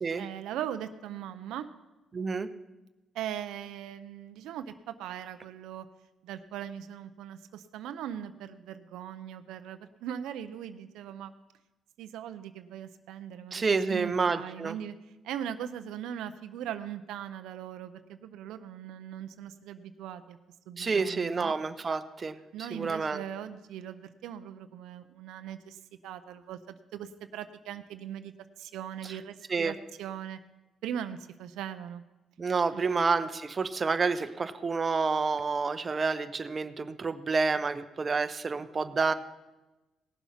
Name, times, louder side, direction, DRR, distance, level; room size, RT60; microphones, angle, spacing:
voice 1, 0.1-1.7 3.1-5.9 6.2-11.3 12.0-15.0 15.2-20.4 20.7-21.5 22.5-30.4 30.8-32.0 32.7-33.1, right 10 dB, 90° right, 10 dB, 0.5 m, -40 dB
voice 2, 2.1-2.5 13.5-14.7 20.8-23.2 29.5-29.7 32.4-39.1, right 4 dB, 35° right, 10 dB, 0.7 m, -29 dB
17.5 x 7.2 x 5.6 m, 1.1 s
cardioid pair, 90°, 0 cm